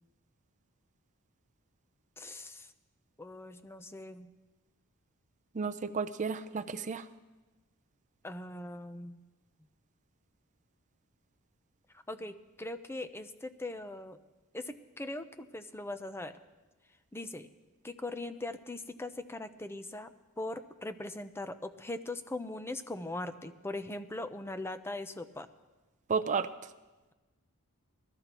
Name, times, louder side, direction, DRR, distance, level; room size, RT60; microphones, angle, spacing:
voice 1, 2.2-2.7 3.2-4.3 8.2-9.2 11.9-14.2 14.5-16.4 17.1-17.5 17.8-20.1 20.4-25.5, left 2 dB, 10° left, 10 dB, 0.6 m, -40 dB
voice 2, 5.6-7.0 26.1-26.5, right 5 dB, 35° right, 10 dB, 0.5 m, -32 dB
21.0 x 14.0 x 3.0 m, 1.2 s
head